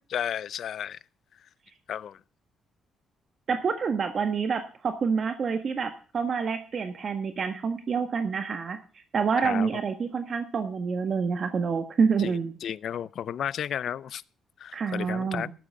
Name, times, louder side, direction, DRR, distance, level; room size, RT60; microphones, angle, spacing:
voice 1, 0.1-1.0 1.9-2.2 9.4-9.7 12.2-14.2 14.6-15.5, left 9 dB, 65° left, 0.5 m, -33 dB
voice 2, 3.5-12.5 14.7-15.5, right 5 dB, 50° right, 1.6 m, -27 dB
13.0 x 12.0 x 3.7 m
cardioid pair, 90°, 0 cm